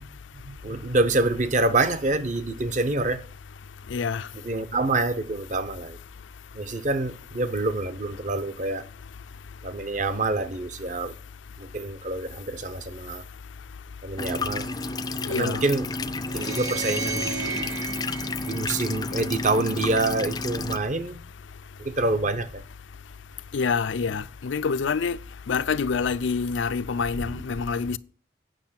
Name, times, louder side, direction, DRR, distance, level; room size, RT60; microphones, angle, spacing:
voice 1, 0.5-3.2 4.4-6.0 6.6-8.9 9.6-11.1 11.7-13.2 14.0-14.7 15.3-15.9 16.3-17.7 18.5-21.2 21.8-22.6, right 2 dB, 40° right, 0.7 m, -26 dB
voice 2, 3.9-4.3 15.3-15.6 23.5-25.2 25.5-28.0, left 5 dB, 80° left, 0.5 m, -26 dB
sound 1, 14.2-20.8, left 3 dB, 20° left, 0.4 m, -31 dB
sound 2, 16.2-19.5, right 4 dB, 60° right, 1.7 m, -34 dB
9.0 x 6.2 x 5.9 m
head